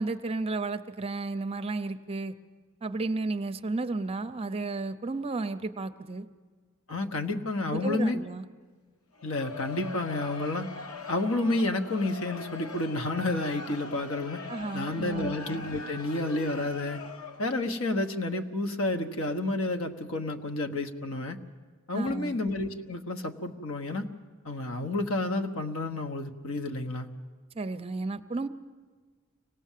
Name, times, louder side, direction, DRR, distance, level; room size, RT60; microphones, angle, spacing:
voice 1, 0.0-2.3 2.8-6.3 7.7-8.4 14.5-15.3 21.9-22.4 27.5-28.5, right 3 dB, 25° right, 10 dB, 0.6 m, -33 dB
voice 2, 6.9-8.2 9.2-10.7 11.1-14.4 14.7-17.0 17.4-21.4 21.9-24.1 24.4-27.1, left 2 dB, 65° left, 5 dB, 1.3 m, -30 dB
Crowd, 9.1-17.6, left 4 dB, 85° left, 1.4 m, -42 dB
25.0 x 18.0 x 7.5 m, 1.5 s
head